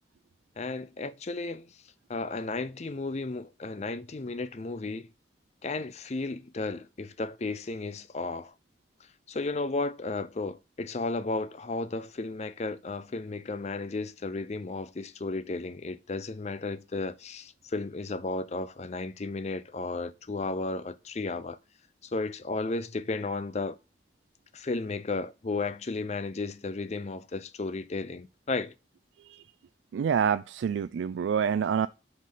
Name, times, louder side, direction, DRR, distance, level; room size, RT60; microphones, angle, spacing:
voice 1, 0.6-1.7 2.1-5.1 5.6-8.5 9.3-21.6 22.0-23.8 24.5-28.7, left 3 dB, 40° left, 0.5 m, -34 dB
voice 2, 29.9-31.9, right 7 dB, 90° right, 0.3 m, -27 dB
5.2 x 4.0 x 5.5 m
head